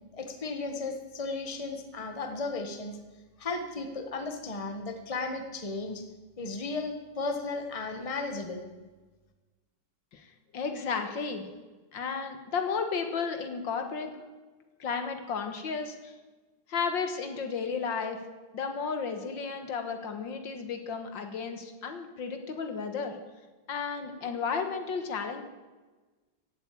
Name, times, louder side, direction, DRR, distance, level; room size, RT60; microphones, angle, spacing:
voice 1, 0.2-3.0 3.4-6.0 6.4-8.7, left 3 dB, 20° left, 6 dB, 1.4 m, -35 dB
voice 2, 10.5-11.5 11.9-14.3 14.8-16.1 16.7-18.2 18.5-23.2 23.7-25.4, left 5 dB, 70° left, 6 dB, 2.1 m, -33 dB
16.0 x 8.3 x 8.5 m, 1.3 s
omnidirectional pair, 2.1 m